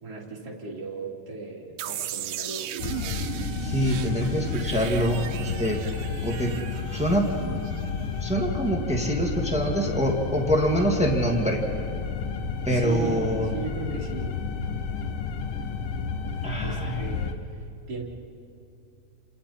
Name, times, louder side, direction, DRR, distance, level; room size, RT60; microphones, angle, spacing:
voice 1, 0.0-2.7 12.7-14.4 16.6-17.3 17.9-18.0, right 4 dB, 30° right, -3 dB, 3.2 m, -36 dB
sound 1, 1.8-8.6, right 11 dB, 80° right, 2.4 m, -37 dB
sound 2, 2.8-17.3, left 5 dB, 80° left, 1.2 m, -31 dB
voice 2, 3.6-5.8 6.2-6.5 6.9-7.3 8.2-11.6 12.6-13.5 16.4-17.1, equal, 5° right, 1 dB, 1.0 m, -25 dB
30.0 x 27.5 x 4.3 m, 2.6 s
omnidirectional pair, 3.9 m